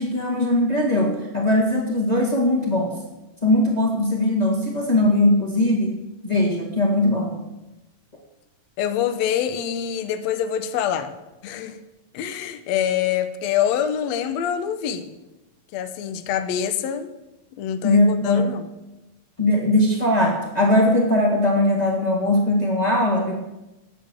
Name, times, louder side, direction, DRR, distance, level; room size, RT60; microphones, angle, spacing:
voice 1, 0.0-3.0 3.4-6.0 6.2-7.3 17.8-18.5 19.4-23.4, left 1 dB, 25° left, -1 dB, 0.8 m, -20 dB
voice 2, 8.8-11.1 11.4-11.8 12.1-15.1 15.7-17.1 17.6-18.7, left 9 dB, 75° left, 9 dB, 1.7 m, -25 dB
10.0 x 6.7 x 8.1 m, 0.99 s
omnidirectional pair, 3.9 m